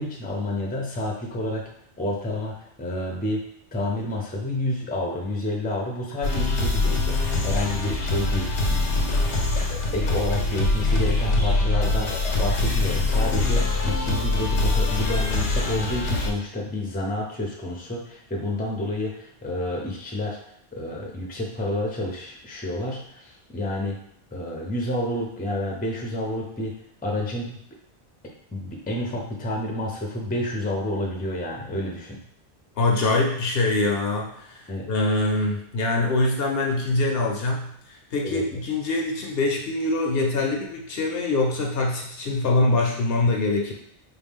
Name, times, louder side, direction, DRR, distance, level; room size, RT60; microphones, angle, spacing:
voice 1, 0.0-1.6 2.0-7.2 7.4-9.2 9.7-20.4 20.7-24.0 24.3-26.7 27.0-27.6 28.5-32.2 34.7-34.9 38.2-38.5, left 1 dB, 10° left, -1 dB, 0.5 m, -29 dB
sound 1, 6.2-16.3, left 2 dB, 85° left, 1.1 m, -23 dB
voice 2, 32.8-43.7, left 2 dB, 65° left, 1 dB, 0.8 m, -24 dB
4.6 x 2.2 x 3.5 m, 0.74 s
omnidirectional pair, 1.1 m